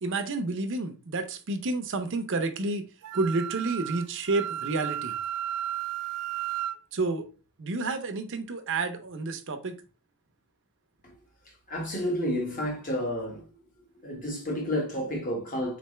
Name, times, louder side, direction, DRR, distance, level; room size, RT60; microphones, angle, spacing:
voice 1, 0.0-2.8 3.1-5.1 6.9-7.3 7.6-9.7, right 3 dB, 60° right, 0.7 m, -30 dB
Wind instrument woodwind instrument, 3.0-6.8, right 12 dB, 80° right, 0.3 m, -33 dB
voice 2, 11.7-13.4 14.0-15.8, equal, 40° left, 1.5 m, -30 dB
4.1 x 3.3 x 3.1 m
head